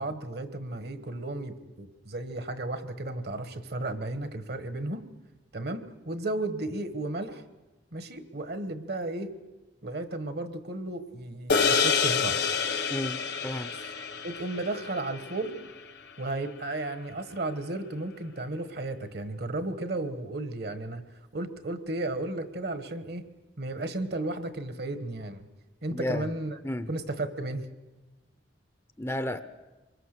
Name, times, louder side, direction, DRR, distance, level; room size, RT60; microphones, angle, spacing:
voice 1, 0.0-5.1 5.5-7.4 7.9-9.3 9.8-12.4 14.2-15.6 16.2-21.0 21.3-23.2 23.6-25.5 25.8-26.6 26.9-27.7, right 2 dB, 55° right, 10 dB, 1.3 m, -34 dB
sound 1, 11.5-16.1, left 6 dB, 60° left, 1.3 m, -28 dB
voice 2, 12.9-13.7 25.9-26.3 26.6-26.9 29.0-29.4, left 1 dB, 15° left, 10 dB, 0.7 m, -32 dB
25.5 x 22.0 x 6.7 m, 1.1 s
head